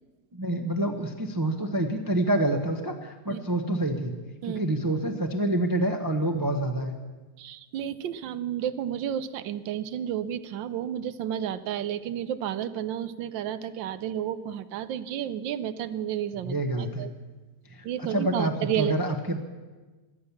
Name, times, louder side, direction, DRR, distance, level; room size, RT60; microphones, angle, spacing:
voice 1, 0.3-4.1 4.4-6.9 16.4-17.1 17.7-19.4, right 1 dB, 20° right, 4 dB, 0.6 m, -27 dB
voice 2, 7.4-17.1 17.8-18.9, right 10 dB, 85° right, 14 dB, 1.5 m, -31 dB
16.5 x 11.5 x 7.0 m, 1.3 s
omnidirectional pair, 2.0 m